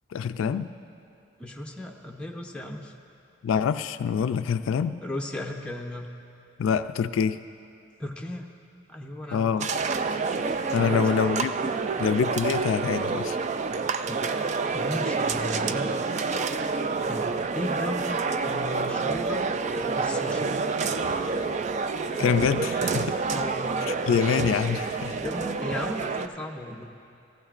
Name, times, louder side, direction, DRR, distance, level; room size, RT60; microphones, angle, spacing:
voice 1, 0.1-0.7 3.4-5.0 6.6-7.4 9.3-9.7 10.7-11.6 12.0-13.4 22.2-23.2 23.9-25.2, left 6 dB, 85° left, 11 dB, 0.3 m, -25 dB
voice 2, 1.4-3.0 5.0-6.1 8.0-8.5 8.9-9.7 10.7-11.0 14.0-14.3 14.7-16.0 17.1-18.2 18.5-20.5 23.3-23.7 25.1-26.8, left 1 dB, 5° left, 0 dB, 0.7 m, -36 dB
sound 1, 9.6-26.3, right 4 dB, 35° right, 0.3 m, -28 dB
17.0 x 15.0 x 2.5 m, 2.7 s
head